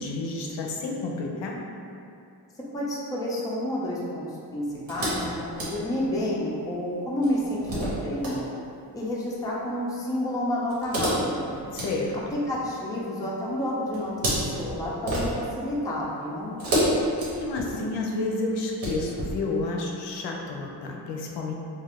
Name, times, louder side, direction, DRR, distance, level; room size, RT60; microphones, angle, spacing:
voice 1, 0.0-1.7 11.7-12.4 17.3-21.5, left 3 dB, 75° left, 0 dB, 0.5 m, -30 dB
voice 2, 2.6-4.2 4.5-8.5 8.9-11.5 12.3-16.6, left 1 dB, 10° left, -5 dB, 0.4 m, -30 dB
sound 1, 4.9-6.4 7.2-8.4 10.7-12.9 13.9-15.7 16.6-17.9 18.5-19.3, equal, 55° right, 1.0 m, -30 dB
2.4 x 2.3 x 3.4 m, 2.6 s
cardioid pair, 125°, 41 cm